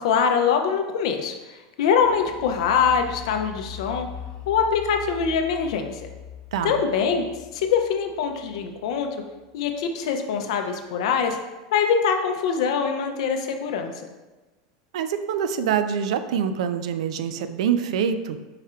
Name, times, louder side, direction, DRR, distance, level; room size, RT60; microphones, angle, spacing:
voice 1, 0.0-1.3 1.8-4.1 4.5-5.9 6.6-7.3 7.5-9.2 9.5-11.4 11.7-13.9, left 6 dB, 65° left, 5 dB, 0.5 m, -23 dB
sound 1, 1.9-9.6, left 8 dB, 20° left, 0.7 m, -42 dB
voice 2, 14.9-18.4, right 8 dB, 85° right, 10 dB, 0.3 m, -25 dB
4.8 x 2.4 x 4.3 m, 1.1 s
supercardioid pair, 175°, 3 cm